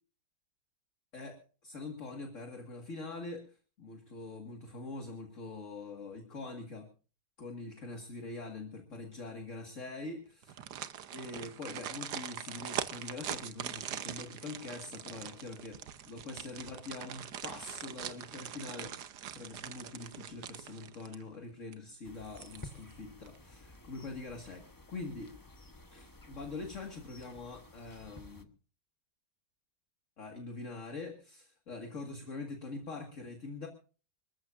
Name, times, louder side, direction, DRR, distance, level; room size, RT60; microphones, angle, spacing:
voice 1, 1.1-6.9 7.4-10.6 11.1-15.8 16.1-18.9 19.3-25.3 25.9-28.5 30.2-33.7, left 3 dB, 45° left, 4 dB, 2.2 m, -44 dB
sound 1, 10.4-21.4 21.7-21.8 22.2-22.9 23.3-23.4, right 9 dB, 70° right, 1.5 m, -42 dB
sound 2, 22.0-28.4, left 2 dB, 15° left, 0.9 m, -53 dB
26.0 x 14.5 x 2.5 m, 0.38 s
omnidirectional pair, 1.8 m